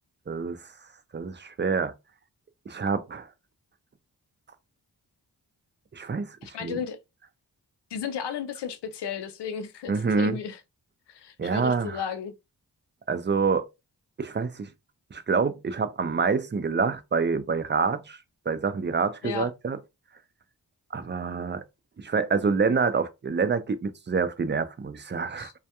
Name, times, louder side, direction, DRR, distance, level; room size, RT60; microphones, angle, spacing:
voice 1, 0.3-0.7 1.1-1.9 2.7-3.3 5.9-6.8 9.9-10.4 11.4-12.0 13.1-13.7 14.2-14.7 15.1-18.2 18.5-19.8 20.9-21.6 22.0-25.5, right 5 dB, 30° right, 0.4 m, -27 dB
voice 2, 6.4-7.0 7.9-10.6 11.1-12.3 19.2-19.5 25.4-25.5, left 7 dB, 80° left, 0.5 m, -34 dB
2.3 x 2.1 x 2.8 m
cardioid pair, 45°, 41 cm